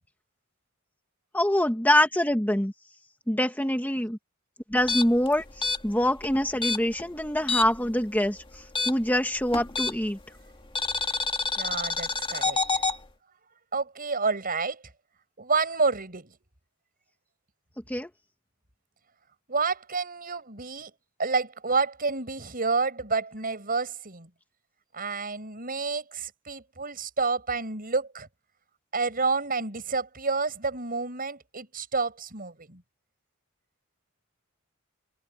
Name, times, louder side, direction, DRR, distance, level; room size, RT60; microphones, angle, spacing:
voice 1, 1.3-2.7 3.3-4.2 4.7-10.2 17.9-18.1, left 1 dB, 10° left, 1.7 m, -25 dB
sound 1, 4.8-7.9 8.2-10.2 10.8-13.0, left 3 dB, 25° left, 2.2 m, -28 dB
voice 2, 11.6-12.6 13.7-14.8 15.4-16.3 19.5-20.9 21.2-24.3 24.9-28.3 28.9-32.8, right 4 dB, 45° right, 5.9 m, -29 dB
head